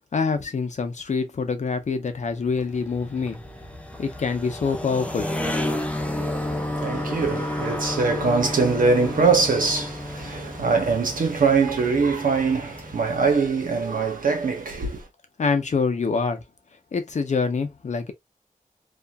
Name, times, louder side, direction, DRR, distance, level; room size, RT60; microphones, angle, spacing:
voice 1, 0.1-3.4 4.0-5.3 15.4-16.4 16.9-18.1, left 4 dB, 55° left, 0.6 m, -25 dB
sound 1, 2.2-13.8, left 1 dB, 10° left, 0.5 m, -32 dB
voice 2, 6.1-15.0, right 4 dB, 75° right, 1.0 m, -23 dB
2.6 x 2.5 x 2.3 m
wide cardioid pair, 90°, 14 cm